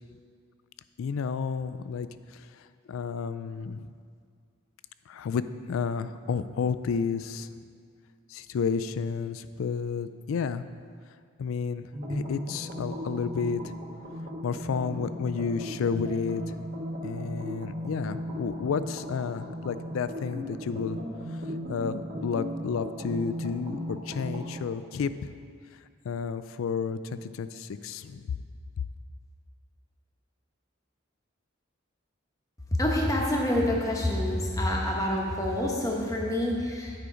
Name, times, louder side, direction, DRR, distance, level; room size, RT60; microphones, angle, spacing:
voice 1, 1.0-2.6 2.9-3.9 5.1-7.5 8.3-10.7 11.4-13.7 14.4-16.4 17.0-21.0 21.7-25.3 26.0-28.4, left 5 dB, 80° left, 13 dB, 0.3 m, -31 dB
sound 1, 11.9-24.7, equal, 50° right, 1.4 m, -37 dB
voice 2, 32.8-36.9, left 1 dB, 15° left, -1 dB, 0.9 m, -27 dB
9.4 x 5.1 x 5.0 m, 2.2 s
head